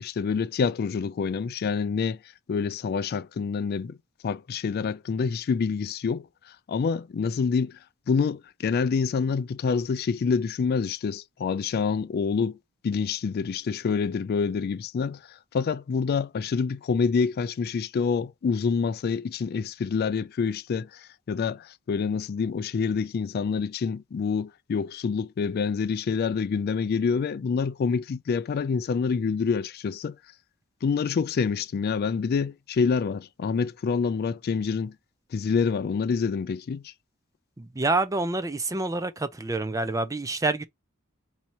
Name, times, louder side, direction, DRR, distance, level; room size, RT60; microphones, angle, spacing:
voice 1, 0.0-2.2 2.5-4.0 4.2-7.8 8.1-12.6 12.8-30.2 30.8-35.0 35.3-36.9, left 5 dB, 50° left, 0.3 m, -27 dB
voice 2, 37.6-40.6, right 2 dB, 15° right, 0.4 m, -27 dB
4.2 x 2.8 x 4.5 m
head